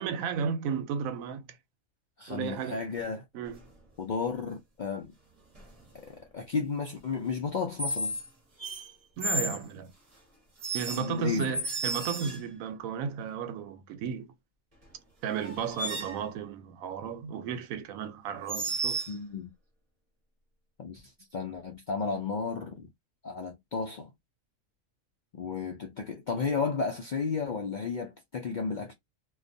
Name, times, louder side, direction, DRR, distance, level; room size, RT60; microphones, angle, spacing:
voice 1, 0.0-1.6 2.3-2.8 3.3-3.6 9.2-9.9 10.7-14.3 15.2-19.0, right 7 dB, 90° right, 1.0 m, -34 dB
voice 2, 2.2-3.2 4.0-5.1 5.9-8.2 11.0-11.6 19.1-19.5 20.8-22.9 23.2-24.1 25.3-28.9, left 5 dB, 70° left, 0.4 m, -33 dB
sound 1, 3.5-3.8 5.5-5.9 7.8-8.3 8.6-9.6 10.6-12.6 14.8-14.9 15.3-16.2 18.5-19.1, right 1 dB, 30° right, 0.8 m, -33 dB
2.4 x 2.2 x 2.6 m
omnidirectional pair, 1.4 m